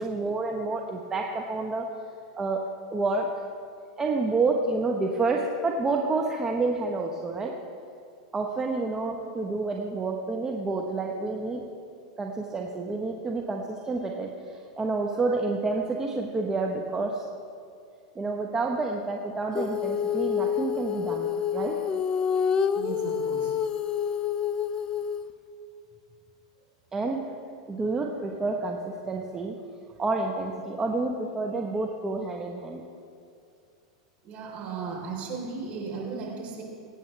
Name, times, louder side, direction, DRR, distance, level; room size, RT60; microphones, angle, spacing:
voice 1, 0.0-1.8 2.4-2.6 2.9-3.3 4.0-7.5 8.3-11.6 12.2-14.3 14.8-17.2 18.1-21.7 26.9-27.2 27.7-29.6 30.0-32.8 34.8-35.1, right 3 dB, 20° right, 1 dB, 1.1 m, -29 dB
Female singing, 19.6-25.3, left 8 dB, 25° left, 0.6 m, -28 dB
voice 2, 22.7-23.5 34.2-36.6, right 5 dB, 45° right, -1 dB, 3.9 m, -36 dB
23.0 x 9.6 x 3.4 m, 2.4 s
hypercardioid pair, 115°, 3 cm